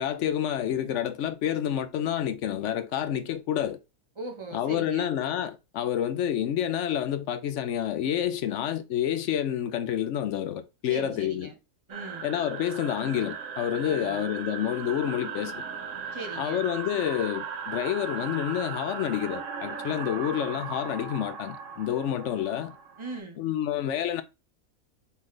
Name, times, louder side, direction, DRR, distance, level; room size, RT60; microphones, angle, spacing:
voice 1, 0.0-3.8 4.5-11.5 12.2-15.6 16.4-22.8 23.4-24.2, left 10 dB, 65° left, 0.8 m, -29 dB
voice 2, 4.2-5.1 10.8-11.6 11.9-12.2 13.8-14.3 16.1-16.7 23.0-23.4, right 2 dB, 25° right, 0.9 m, -39 dB
sound 1, 11.9-23.2, right 6 dB, 65° right, 1.1 m, -37 dB
4.2 x 3.9 x 3.2 m
omnidirectional pair, 1.6 m